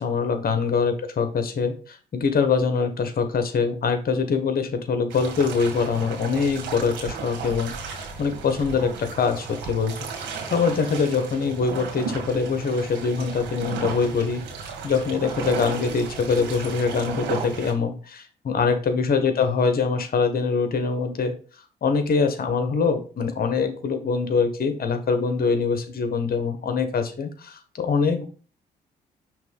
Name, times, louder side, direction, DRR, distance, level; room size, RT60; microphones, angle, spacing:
voice 1, 0.0-21.3 21.8-28.3, left 5 dB, 55° left, 8 dB, 1.4 m, -24 dB
sound 1, 5.1-17.7, right 5 dB, 80° right, 1.6 m, -35 dB
5.9 x 3.2 x 5.3 m, 0.38 s
supercardioid pair, 55°, 19 cm